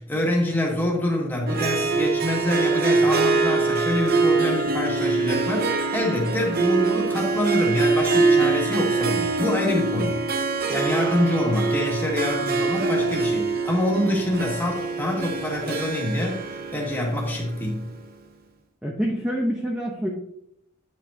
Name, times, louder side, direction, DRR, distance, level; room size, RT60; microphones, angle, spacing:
voice 1, 0.0-10.2 10.7-17.9, left 1 dB, 10° left, -3 dB, 2.0 m, -26 dB
Harp, 1.5-18.0, right 3 dB, 50° right, 0.7 m, -24 dB
voice 2, 18.8-20.1, equal, 5° right, -2 dB, 0.8 m, -26 dB
9.5 x 6.1 x 2.8 m, 0.74 s
head